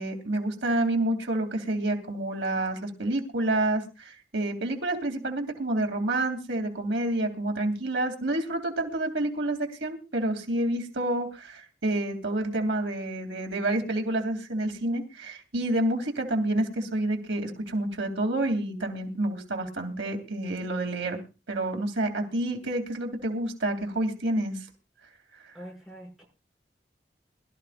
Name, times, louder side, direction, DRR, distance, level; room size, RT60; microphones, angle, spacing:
voice 1, 0.0-21.2 21.5-24.6 25.4-25.5, right 1 dB, 90° right, 4 dB, 2.9 m, -29 dB
voice 2, 25.5-26.2, equal, ahead, -1 dB, 6.8 m, -44 dB
22.5 x 13.5 x 2.5 m, 0.31 s
head